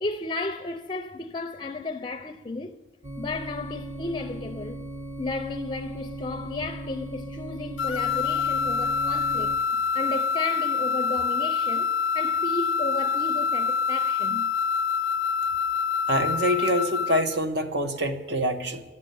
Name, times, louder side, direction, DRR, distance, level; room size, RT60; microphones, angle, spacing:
voice 1, 0.0-2.8 3.2-4.8 5.2-9.5 9.9-14.5, left 3 dB, 25° left, 0.5 m, -33 dB
sound 1, 3.0-9.6, right 2 dB, 30° right, 1.0 m, -38 dB
sound 2, 7.8-17.4, left 6 dB, 85° left, 0.4 m, -26 dB
voice 2, 16.1-18.8, equal, 65° right, 1.1 m, -25 dB
12.5 x 9.7 x 9.2 m
head